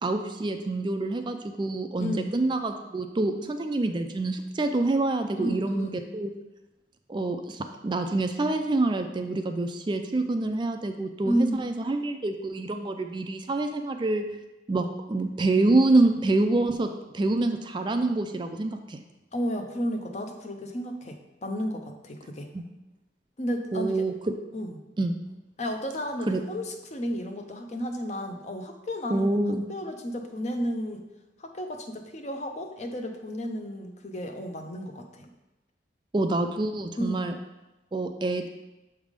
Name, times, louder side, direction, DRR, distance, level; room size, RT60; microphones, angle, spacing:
voice 1, 0.0-6.3 7.1-14.2 14.7-19.0 22.5-22.6 23.7-24.3 25.0-25.2 26.3-26.4 29.1-29.6 36.1-37.3 37.9-38.5, right 2 dB, 25° right, 6 dB, 0.3 m, -26 dB
voice 2, 5.4-5.9 11.2-11.6 19.3-22.5 23.4-24.1 24.5-24.7 25.6-29.4 29.7-31.0 31.4-35.3 37.0-37.2, equal, 40° left, 4 dB, 0.6 m, -32 dB
7.2 x 3.4 x 5.1 m, 1.0 s
head